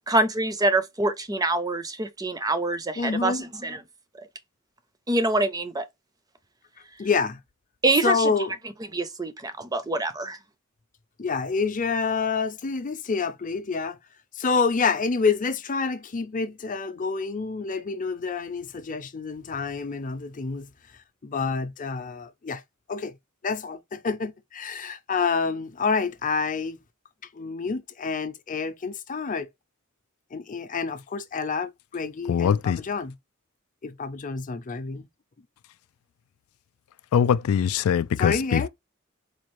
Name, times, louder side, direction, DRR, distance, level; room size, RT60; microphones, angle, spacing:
voice 1, 0.1-3.8 5.1-5.8 7.8-8.3 8.9-10.4, right 2 dB, 20° right, 0.5 m, -25 dB
voice 2, 3.0-3.4 7.0-7.4 8.0-8.5 11.2-14.0 14.4-20.7 21.2-22.6 22.9-23.1 23.4-26.8 27.3-29.5 30.3-33.1 33.8-35.1 38.2-38.7, left 5 dB, 40° left, 0.6 m, -28 dB
voice 3, 32.3-32.8 37.1-38.7, left 8 dB, 85° left, 0.3 m, -22 dB
4.3 x 2.4 x 3.0 m
head